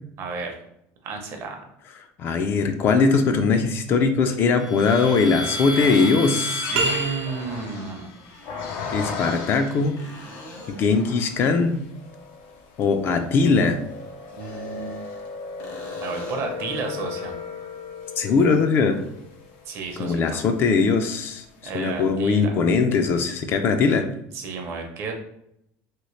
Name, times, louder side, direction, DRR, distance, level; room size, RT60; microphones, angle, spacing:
voice 1, 0.2-0.6 1.0-1.6 6.7-8.1 14.3-14.9 16.0-17.3 19.7-20.4 21.6-22.5 24.3-25.1, right 4 dB, 45° right, 3 dB, 0.7 m, -32 dB
voice 2, 2.2-6.8 8.9-10.0 10.7-11.8 12.8-13.8 18.2-19.0 20.0-21.4 21.7-24.0, left 4 dB, 40° left, 7 dB, 0.3 m, -20 dB
sound 1, 4.6-10.1 10.6-11.5 11.9-21.1, left 3 dB, 85° left, 0.6 m, -35 dB
sound 2, 6.7-7.8, right 3 dB, 85° right, 0.6 m, -26 dB
sound 3, 8.1-8.9 10.0-11.1 14.2-15.3 15.6-16.6 20.3-20.4, left 1 dB, 65° left, 1.1 m, -44 dB
2.9 x 2.8 x 3.0 m, 0.76 s
cardioid pair, 150°, 6 cm